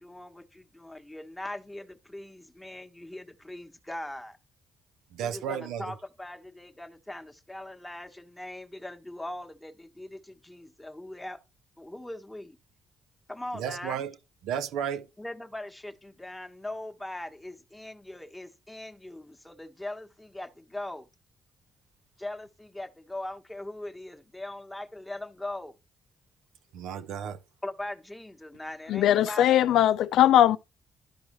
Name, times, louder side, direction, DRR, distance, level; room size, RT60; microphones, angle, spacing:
voice 1, 0.0-4.4 5.2-11.4 11.8-12.6 13.3-14.0 15.2-21.1 22.2-25.8 27.6-29.8, left 1 dB, 10° left, 1.1 m, -40 dB
voice 2, 5.1-6.0 13.5-14.2 14.4-15.1 26.7-27.4, right 8 dB, 90° right, 0.7 m, -33 dB
voice 3, 28.9-30.6, left 12 dB, 80° left, 0.3 m, -20 dB
12.0 x 4.7 x 3.0 m
cardioid pair, 90°, 0 cm